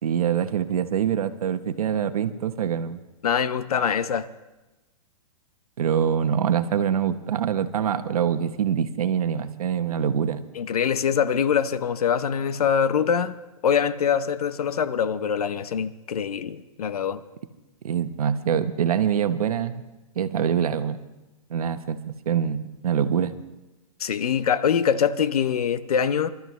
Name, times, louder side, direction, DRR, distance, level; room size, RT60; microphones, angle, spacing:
voice 1, 0.0-3.0 5.8-10.4 17.8-19.8 20.2-21.0 21.5-23.3, right 8 dB, 75° right, 1.0 m, -24 dB
voice 2, 3.2-4.3 10.6-13.4 13.6-17.2 24.0-26.3, left 7 dB, 85° left, 0.8 m, -24 dB
25.5 x 13.0 x 3.1 m
hypercardioid pair, 165°, 19 cm